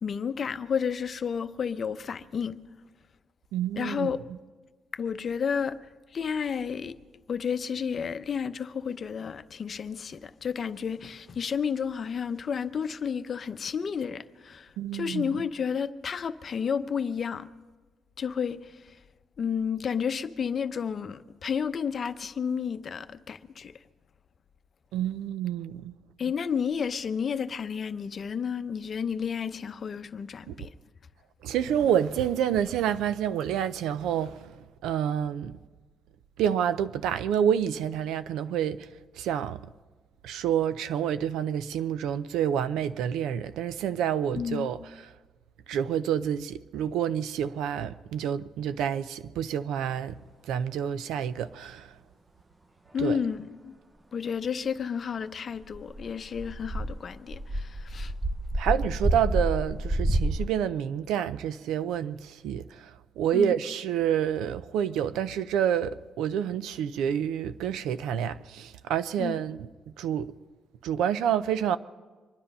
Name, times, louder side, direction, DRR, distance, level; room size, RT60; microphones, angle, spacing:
voice 1, 0.0-2.6 3.8-4.2 4.9-5.8 6.1-7.0 7.3-17.5 18.2-19.0 19.4-23.8 26.2-30.7 44.3-44.7 52.9-53.7 54.1-58.1 63.3-63.5 69.2-69.4, left 7 dB, 45° left, 0.7 m, -31 dB
voice 2, 3.5-4.1 14.8-15.4 24.9-26.0 30.5-30.6 31.4-35.5 36.4-38.9 39.1-39.6 40.2-44.8 45.7-50.1 50.4-52.0 53.0-53.2 58.5-69.7 70.0-70.3 70.8-71.8, right 9 dB, 85° right, 0.5 m, -28 dB
sound 1, 55.6-60.5, right 1 dB, 15° right, 0.8 m, -29 dB
25.0 x 10.5 x 5.5 m
cardioid pair, 90°, 0 cm